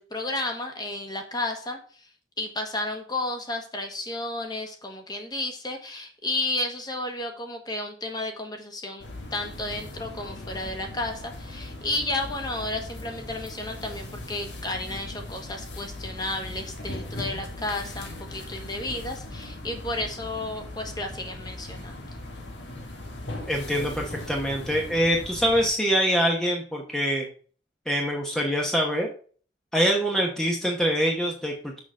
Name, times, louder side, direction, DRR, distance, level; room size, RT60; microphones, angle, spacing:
voice 1, 0.0-2.1 2.4-21.9, left 2 dB, 25° left, 3 dB, 1.3 m, -32 dB
sound 1, 9.0-25.7, left 2 dB, 85° left, 1.7 m, -39 dB
voice 2, 23.5-27.3 27.9-29.1 29.7-31.8, equal, 5° left, -1 dB, 0.9 m, -24 dB
6.4 x 3.9 x 6.3 m, 0.43 s
head